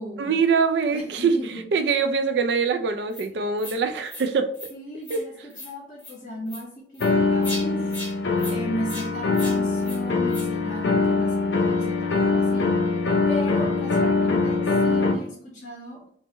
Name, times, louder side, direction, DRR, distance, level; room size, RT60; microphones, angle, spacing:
voice 1, 0.2-4.5 5.1-5.2, right 5 dB, 75° right, 9 dB, 0.4 m, -23 dB
voice 2, 0.9-1.6 3.3-3.4 4.7-7.8 8.5-12.7 13.3-16.0, equal, 45° left, -3 dB, 1.6 m, -35 dB
sound 1, 3.1-3.3 3.6-3.8 4.1-4.3 4.5-4.7 5.0-5.2 5.5-5.7 6.0-6.1 6.5-6.6 6.9-7.1 7.4-7.6 7.9-8.1 8.4-8.6 8.9-9.1 9.3-9.6 9.8-10.0 10.3-10.5, left 1 dB, 10° left, 1.4 m, -37 dB
sound 2, 7.0-15.1, left 3 dB, 90° left, 0.6 m, -23 dB
5.2 x 2.1 x 3.0 m, 0.63 s
head